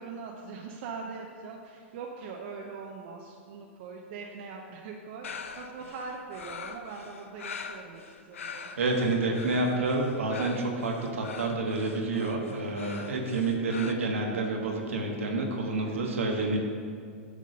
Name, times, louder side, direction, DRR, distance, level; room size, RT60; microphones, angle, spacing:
voice 1, 0.0-8.7 15.8-16.2, right 4 dB, 60° right, 0 dB, 0.8 m, -42 dB
sound 1, 5.2-13.9, left 6 dB, 85° left, 0.6 m, -43 dB
voice 2, 8.4-16.6, right 2 dB, 85° right, 1 dB, 1.4 m, -29 dB
9.5 x 3.7 x 6.6 m, 2.2 s
hypercardioid pair, 110°, 7 cm